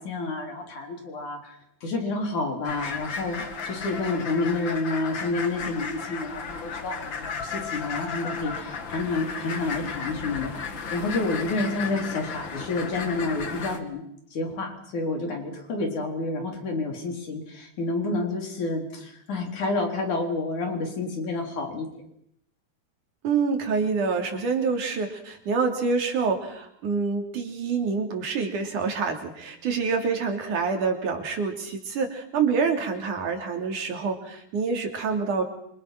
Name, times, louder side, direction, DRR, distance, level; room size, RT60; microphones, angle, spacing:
voice 1, 0.0-10.5 10.9-22.0, left 3 dB, 70° left, 3 dB, 5.6 m, -29 dB
sound 1, 2.6-13.8, left 5 dB, 40° left, 2.4 m, -34 dB
voice 2, 23.2-35.4, right 5 dB, 75° right, 4 dB, 4.7 m, -27 dB
27.5 x 26.5 x 6.1 m, 0.73 s
omnidirectional pair, 3.5 m